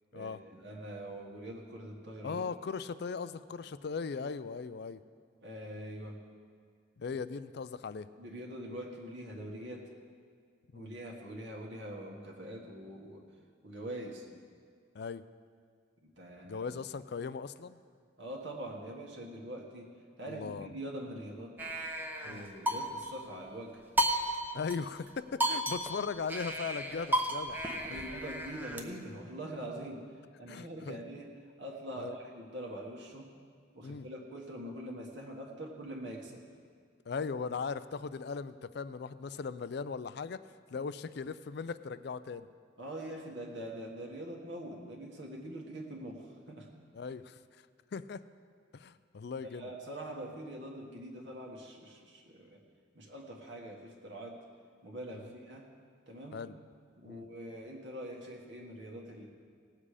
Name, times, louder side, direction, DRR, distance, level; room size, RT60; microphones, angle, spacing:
voice 1, 0.1-2.4 5.4-6.2 8.2-9.9 10.7-13.2 13.6-14.3 16.0-16.7 18.2-21.6 22.2-23.8 27.9-30.0 30.4-31.3 31.6-33.3 33.7-36.4 42.8-46.7 49.4-52.6 52.9-54.4 54.8-55.7 56.1-56.4 57.0-59.3, right 1 dB, 65° right, -1 dB, 1.6 m, -44 dB
voice 2, 2.2-5.0 7.0-8.1 10.7-10.9 14.9-15.2 16.4-17.8 20.2-20.7 22.3-22.5 24.5-27.6 27.9-28.1 30.5-31.0 32.0-32.1 33.8-34.1 37.1-40.4 40.7-42.5 46.9-47.4 47.9-48.2 48.7-49.7 55.1-55.3 56.3-56.6 57.0-57.2, left 5 dB, 55° left, 14 dB, 0.4 m, -38 dB
sound 1, 21.6-23.2 24.0-24.8 25.1-25.2 25.4-28.8, right 1 dB, 10° right, 0.7 m, -33 dB
18.5 x 7.4 x 4.9 m, 2.1 s
head